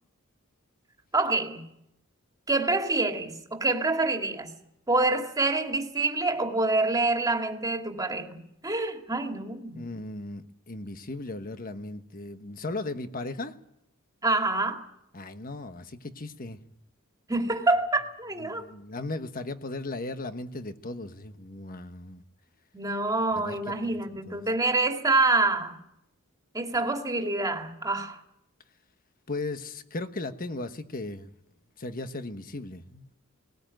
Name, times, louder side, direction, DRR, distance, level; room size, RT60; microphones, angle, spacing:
voice 1, 1.1-1.6 2.5-4.5 4.9-9.8 14.2-14.9 17.3-18.6 22.7-25.8 26.5-28.2, right 2 dB, 15° right, 2.4 m, -26 dB
voice 2, 9.7-13.6 15.1-16.6 18.4-22.2 23.3-23.7 24.3-24.4 29.3-31.3 31.8-33.1, left 2 dB, 40° left, 1.3 m, -37 dB
19.5 x 19.0 x 9.1 m
head